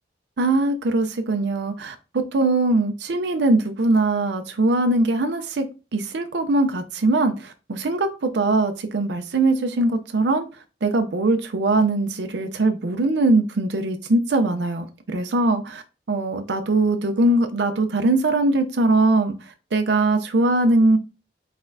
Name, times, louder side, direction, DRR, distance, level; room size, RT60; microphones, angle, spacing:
voice 1, 0.4-1.9 2.3-5.6 5.9-10.5 10.8-15.8 16.1-19.3 19.7-21.0, right 2 dB, 80° right, 0.5 m, -21 dB
4.3 x 4.0 x 2.6 m
head